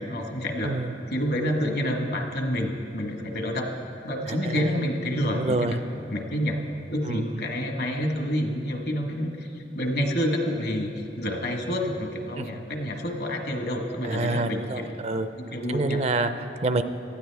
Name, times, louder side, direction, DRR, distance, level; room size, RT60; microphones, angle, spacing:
voice 1, 0.0-0.7 1.1-3.7 4.0-5.7 6.1-6.6 6.9-14.9 15.4-16.0, equal, 65° left, 3 dB, 1.4 m, -28 dB
voice 2, 0.6-0.9 4.3-4.7 5.3-5.8 7.0-7.4 12.4-12.6 14.0-15.3 15.7-16.8, right 2 dB, 35° right, 10 dB, 0.5 m, -27 dB
18.5 x 13.0 x 3.4 m, 2.8 s
head